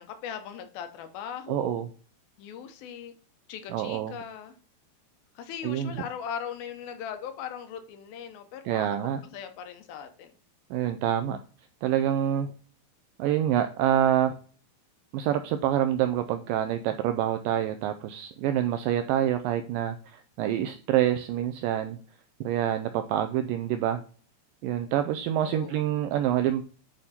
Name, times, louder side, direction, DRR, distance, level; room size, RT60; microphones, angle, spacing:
voice 1, 0.0-1.8 2.4-3.1 3.5-4.5 5.4-8.9 9.3-10.3 25.4-25.8, left 8 dB, 75° left, 7 dB, 2.6 m, -39 dB
voice 2, 1.5-1.9 3.7-4.1 5.6-5.9 8.7-9.2 10.7-11.4 11.8-12.5 13.2-14.3 15.1-22.0 22.4-24.0 24.6-26.6, right 11 dB, 85° right, 8 dB, 1.9 m, -26 dB
8.9 x 3.6 x 4.2 m, 0.41 s
omnidirectional pair, 4.4 m